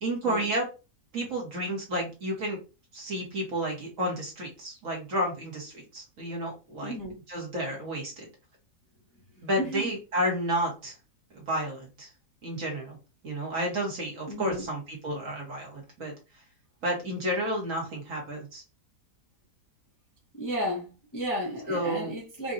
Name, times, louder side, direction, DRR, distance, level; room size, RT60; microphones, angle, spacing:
voice 1, 0.0-0.7 1.1-2.6 2.9-6.9 7.3-8.3 9.4-10.9 11.3-12.1 12.4-13.0 13.2-16.1 16.8-18.6 21.7-22.1, right 1 dB, 55° right, 1.5 m, -31 dB
voice 2, 6.8-7.2 9.6-10.0 14.3-14.7 20.3-22.5, equal, 15° left, 0.7 m, -33 dB
4.8 x 2.3 x 2.6 m
omnidirectional pair, 1.7 m